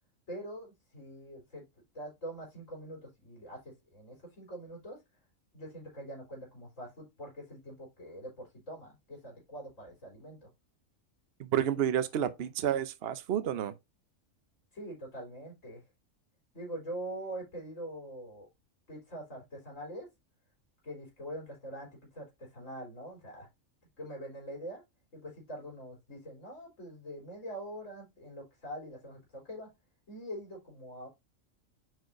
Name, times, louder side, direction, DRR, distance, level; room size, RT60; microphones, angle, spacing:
voice 1, 0.3-1.7 1.9-5.0 5.5-10.5 14.7-15.8 16.5-18.5 18.9-20.1 20.8-23.5 24.0-24.8 25.1-29.7 30.1-31.1, right 1 dB, 75° left, 3.6 m, -44 dB
voice 2, 11.4-13.7, right 10 dB, 60° right, 0.8 m, -30 dB
9.0 x 4.3 x 2.5 m
omnidirectional pair, 1.3 m